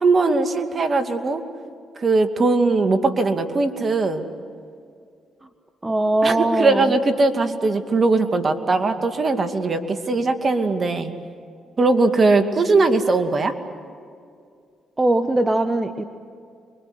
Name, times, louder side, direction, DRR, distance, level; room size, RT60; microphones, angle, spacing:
voice 1, 0.0-1.4 2.0-4.3 6.2-11.1 11.8-13.5, right 3 dB, 45° right, 7 dB, 2.3 m, -20 dB
voice 2, 5.8-6.9 15.0-16.0, right 1 dB, 20° right, 8 dB, 1.4 m, -20 dB
26.0 x 23.0 x 8.1 m, 2.3 s
supercardioid pair, 50°, 0 cm